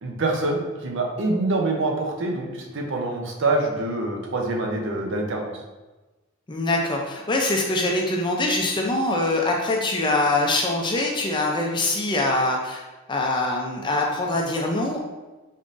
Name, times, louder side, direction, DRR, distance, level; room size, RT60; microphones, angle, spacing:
voice 1, 0.0-5.5, right 2 dB, 55° right, 1 dB, 0.6 m, -25 dB
voice 2, 6.5-12.8 13.1-15.0, left 2 dB, 20° left, 0 dB, 0.4 m, -23 dB
4.0 x 3.7 x 2.5 m, 1.2 s
head